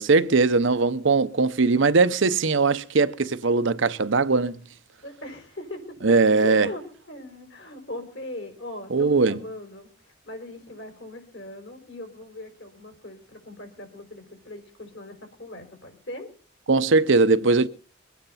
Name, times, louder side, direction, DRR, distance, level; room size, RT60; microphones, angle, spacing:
voice 1, 0.0-4.6 6.0-6.7 8.9-9.4 16.7-17.7, right 4 dB, 65° right, 0.7 m, -20 dB
voice 2, 5.0-6.2 6.4-16.3, left 1 dB, 60° left, 4.8 m, -39 dB
23.0 x 9.3 x 5.7 m
head